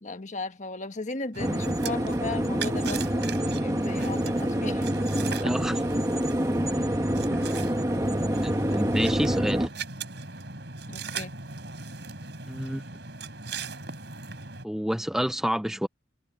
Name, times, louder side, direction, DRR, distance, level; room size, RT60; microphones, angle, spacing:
voice 1, 0.0-4.8 10.9-11.3, left 3 dB, 40° left, 1.4 m, -36 dB
sound 1, 1.3-14.7, right 4 dB, 65° right, 4.9 m, -39 dB
sound 2, 1.4-9.7, equal, 20° right, 1.4 m, -27 dB
voice 2, 5.4-5.8 8.4-9.7 12.5-12.8 14.6-15.9, equal, 5° right, 0.5 m, -29 dB
head